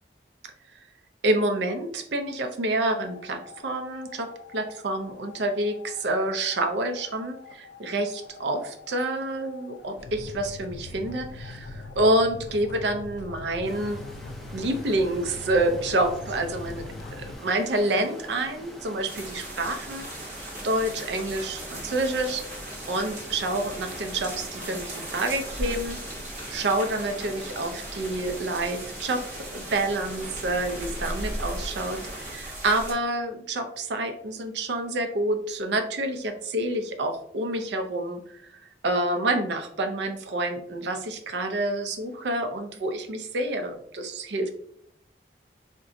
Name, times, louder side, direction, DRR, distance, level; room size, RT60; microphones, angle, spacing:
voice 1, 1.2-14.0 14.5-16.8 17.4-20.1 20.6-22.4 22.9-26.0 26.5-29.2 29.5-44.5, right 1 dB, 80° right, 6 dB, 0.5 m, -28 dB
sound 1, 3.0-17.4, left 3 dB, 80° left, 0.3 m, -43 dB
sound 2, 13.6-32.3, equal, ahead, 0.3 m, -45 dB
sound 3, 19.1-32.9, right 1 dB, 40° right, 0.9 m, -37 dB
3.8 x 2.2 x 2.5 m, 0.69 s
head